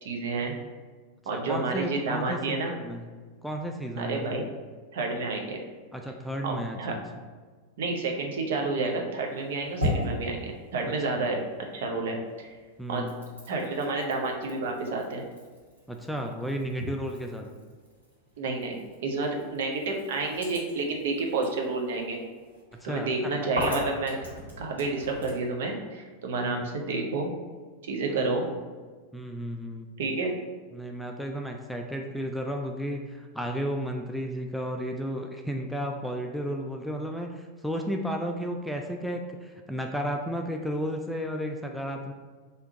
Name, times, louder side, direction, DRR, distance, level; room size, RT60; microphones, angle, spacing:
voice 1, 0.0-0.5 1.3-2.7 4.0-4.4 4.9-5.6 6.4-7.0 7.8-11.4 11.7-12.5 12.9-13.0 13.5-15.2 18.4-22.2 22.8-24.2 24.6-27.3 27.8-28.5 30.0-30.3, right 3 dB, 55° right, 1 dB, 0.7 m, -30 dB
voice 2, 1.3-3.1 3.4-4.5 5.9-7.0 11.1-11.3 12.8-13.2 15.9-17.5 22.9-23.3 26.4-26.7 28.2-28.5 29.1-29.9 30.7-42.1, equal, ahead, 2 dB, 0.3 m, -33 dB
sound 1, 9.2-11.9 12.2-25.5, equal, 75° right, 1.5 m, -38 dB
3.4 x 2.8 x 4.5 m, 1.5 s
figure-of-eight pair, 90°, 0 cm